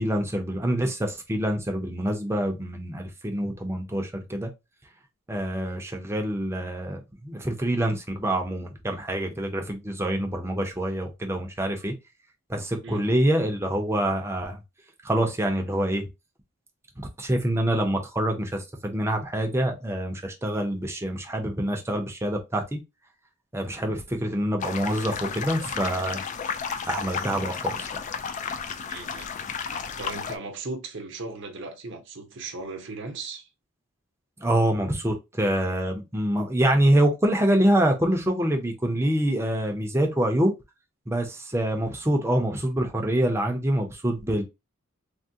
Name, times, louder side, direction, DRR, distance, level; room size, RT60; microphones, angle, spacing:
voice 1, 0.0-4.5 5.3-11.9 12.5-14.6 15.0-16.1 17.0-22.8 23.5-26.2 26.9-27.9 34.4-40.5 41.1-44.4, right 1 dB, 15° right, 0.6 m, -26 dB
sound 1, 24.6-30.4, left 6 dB, 35° left, 0.3 m, -32 dB
voice 2, 28.9-29.3 29.7-33.5, right 3 dB, 60° right, 0.8 m, -37 dB
3.5 x 2.1 x 2.6 m
head